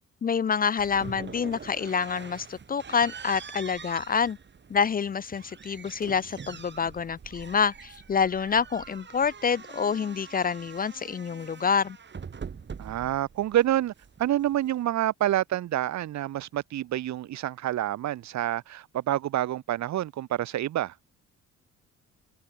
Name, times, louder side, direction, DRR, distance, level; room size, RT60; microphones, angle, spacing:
voice 1, 0.2-4.4 4.7-12.0, left 6 dB, 30° left, 0.5 m, -27 dB
sound 1, 0.8-14.8, right 6 dB, 35° right, 2.1 m, -44 dB
voice 2, 12.8-13.9 14.2-20.9, right 13 dB, 65° right, 0.9 m, -28 dB
cardioid pair, 90°, 30 cm